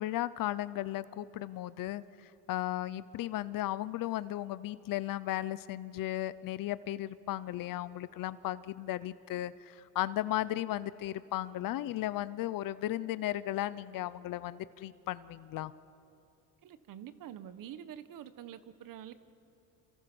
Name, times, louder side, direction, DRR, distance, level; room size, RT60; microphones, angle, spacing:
voice 1, 0.0-15.7, left 14 dB, 65° left, 17 dB, 0.7 m, -35 dB
voice 2, 16.6-19.1, right 10 dB, 65° right, 12 dB, 1.3 m, -46 dB
28.5 x 28.0 x 6.2 m, 2.8 s
cardioid pair, 130°, 36 cm